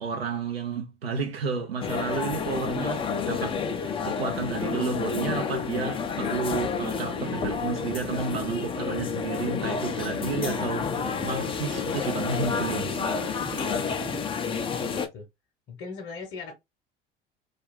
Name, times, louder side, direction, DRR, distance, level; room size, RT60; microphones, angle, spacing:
voice 1, 0.0-12.9, right 5 dB, 90° right, 0.5 m, -31 dB
sound 1, 1.8-15.1, left 6 dB, 20° left, 0.4 m, -30 dB
sound 2, 6.8-14.2, right 5 dB, 70° right, 1.1 m, -41 dB
voice 2, 13.9-14.3 14.7-15.3 15.7-16.5, left 4 dB, 35° left, 0.9 m, -40 dB
2.4 x 2.2 x 3.1 m
figure-of-eight pair, 70°, 29 cm